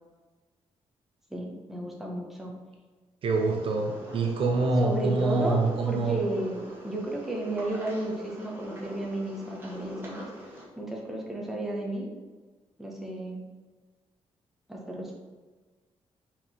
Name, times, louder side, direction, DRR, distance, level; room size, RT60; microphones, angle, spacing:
voice 1, 1.3-2.5 4.8-10.5 10.8-12.1 12.8-13.4 14.7-15.1, right 1 dB, 5° right, -2 dB, 1.1 m, -33 dB
voice 2, 3.2-6.2, right 3 dB, 55° right, 3 dB, 0.7 m, -26 dB
sound 1, 3.3-10.6, equal, 20° right, 1.8 m, -45 dB
4.9 x 4.5 x 4.4 m, 1.3 s
cardioid pair, 135°, 11 cm